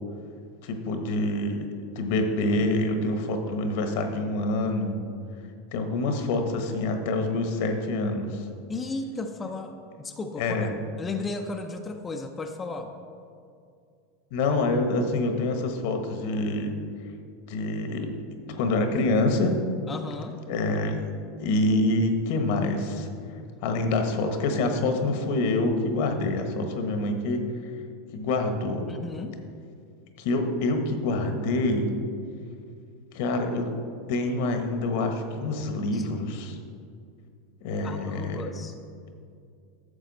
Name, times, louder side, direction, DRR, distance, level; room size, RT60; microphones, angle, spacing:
voice 1, 0.6-1.7 1.9-5.0 5.7-8.5 10.4-10.7 14.3-16.8 17.5-18.1 18.5-19.5 20.5-21.0 21.4-23.1 23.6-27.4 28.1-28.9 30.2-31.9 33.1-33.7 34.1-36.6 37.6-38.5, left 2 dB, 65° left, 5 dB, 1.2 m, -26 dB
voice 2, 8.7-10.6 11.0-12.9 19.9-20.4 28.9-29.3 35.9-36.1 37.8-38.7, left 3 dB, 20° left, 3 dB, 0.7 m, -35 dB
11.5 x 7.0 x 4.1 m, 2.3 s
hypercardioid pair, 100°, 0 cm